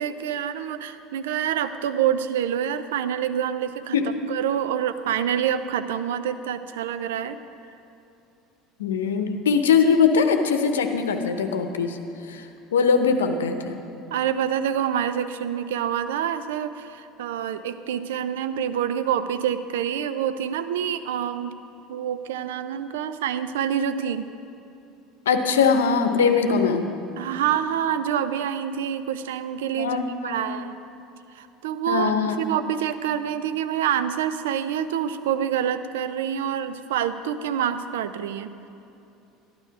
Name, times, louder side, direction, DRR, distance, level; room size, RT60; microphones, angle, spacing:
voice 1, 0.0-4.0 4.3-7.4 14.1-21.6 21.9-24.3 26.4-26.5 27.2-30.7 31.3-38.5, right 9 dB, 75° right, 11 dB, 0.5 m, -27 dB
voice 2, 8.8-12.0 12.3-12.4 12.7-13.8 25.3-26.9 29.8-30.5 31.9-32.4, left 6 dB, 80° left, 7 dB, 0.8 m, -21 dB
13.0 x 12.0 x 4.8 m, 2.8 s
hypercardioid pair, 70°, 0 cm